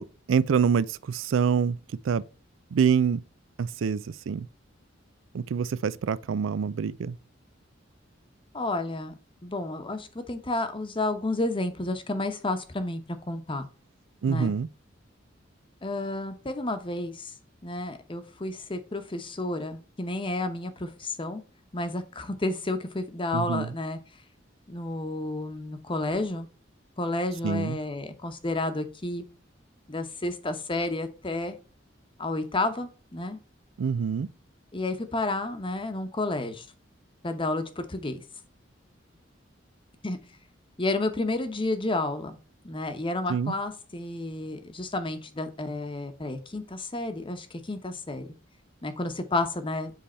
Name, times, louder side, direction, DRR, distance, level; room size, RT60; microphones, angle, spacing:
voice 1, 0.0-1.8 2.0-2.2 2.7-3.2 3.6-4.5 5.3-7.2 14.2-14.7 23.3-23.7 27.4-27.8 33.8-34.3 43.3-43.5, right 6 dB, 85° right, 0.4 m, -26 dB
voice 2, 8.5-9.1 9.4-13.0 13.3-13.7 14.3-14.5 15.8-17.3 17.6-21.4 21.7-24.0 24.7-26.5 27.0-29.2 29.9-31.6 32.2-33.4 34.7-36.7 37.2-38.2 40.0-40.2 40.8-42.4 42.6-48.3 48.8-49.9, left 2 dB, 25° left, 0.9 m, -31 dB
7.6 x 3.4 x 4.3 m
head